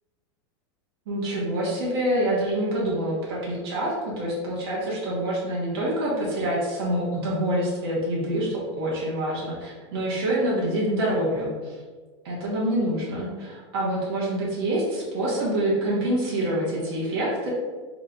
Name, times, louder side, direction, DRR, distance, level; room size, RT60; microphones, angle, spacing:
voice 1, 1.1-11.8 12.2-17.5, right 1 dB, 55° right, -6 dB, 1.2 m, -26 dB
3.2 x 2.9 x 3.9 m, 1.4 s
supercardioid pair, 170°, 15 cm